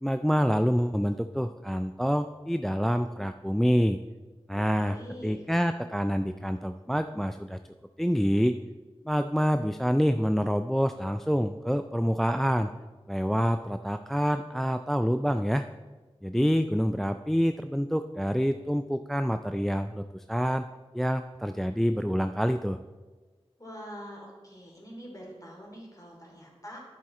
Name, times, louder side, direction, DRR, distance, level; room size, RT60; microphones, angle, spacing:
voice 1, 0.0-4.0 4.5-5.0 5.2-7.6 8.0-8.6 9.1-12.7 13.1-15.6 16.2-20.7 20.9-22.8, equal, 5° left, 8 dB, 0.3 m, -27 dB
voice 2, 4.5-5.4 23.6-26.8, equal, 30° left, -2 dB, 2.9 m, -44 dB
10.5 x 7.4 x 4.3 m, 1.3 s
wide cardioid pair, 55°, 11 cm